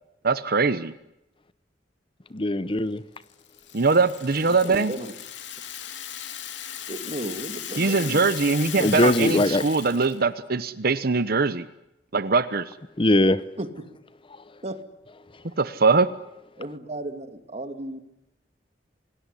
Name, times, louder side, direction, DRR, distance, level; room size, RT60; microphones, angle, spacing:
voice 1, 0.2-0.9 3.7-4.9 7.8-11.7 12.1-12.6 15.6-16.1, right 4 dB, 55° right, 13 dB, 1.0 m, -22 dB
voice 2, 2.3-3.0 8.8-9.6 13.0-13.4, left 1 dB, 30° left, 15 dB, 0.9 m, -20 dB
Rattle (instrument), 3.2-10.2, left 10 dB, 80° left, 2.6 m, -37 dB
voice 3, 4.5-5.1 6.9-8.3 13.6-13.7 14.6-14.8 16.6-18.0, right 1 dB, 35° right, 8 dB, 2.6 m, -34 dB
27.0 x 19.5 x 10.0 m, 0.89 s
head